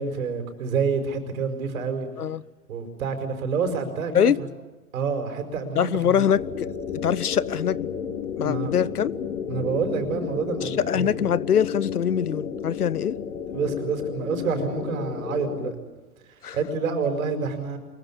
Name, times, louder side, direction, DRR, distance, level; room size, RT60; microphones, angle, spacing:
voice 1, 0.0-2.1 2.7-4.3 4.9-6.2 8.4-8.7 9.5-11.2 13.5-15.7 16.5-17.8, right 5 dB, 65° right, 5.1 m, -28 dB
voice 2, 5.8-7.9 8.4-9.1 10.6-13.2 16.4-16.6, left 8 dB, 90° left, 0.8 m, -23 dB
sound 1, 6.3-15.7, left 7 dB, 70° left, 2.7 m, -32 dB
23.5 x 23.0 x 8.6 m
hypercardioid pair, 125°, 44 cm